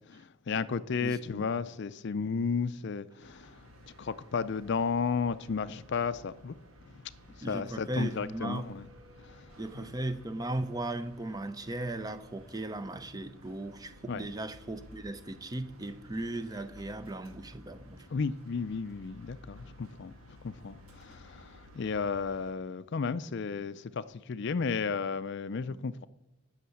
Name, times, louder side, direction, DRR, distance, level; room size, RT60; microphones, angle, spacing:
voice 1, 0.1-3.6 4.0-6.5 6.9-7.1 7.4-8.9 9.2-9.5 9.7-9.9 14.1-14.3 18.1-26.1, left 5 dB, 55° left, 0.4 m, -33 dB
voice 2, 1.0-1.5 7.4-8.7 9.6-18.1 25.7-25.8, right 2 dB, 20° right, 0.7 m, -37 dB
sound 1, 3.2-22.5, equal, 85° right, 1.9 m, -54 dB
16.0 x 6.5 x 7.0 m
head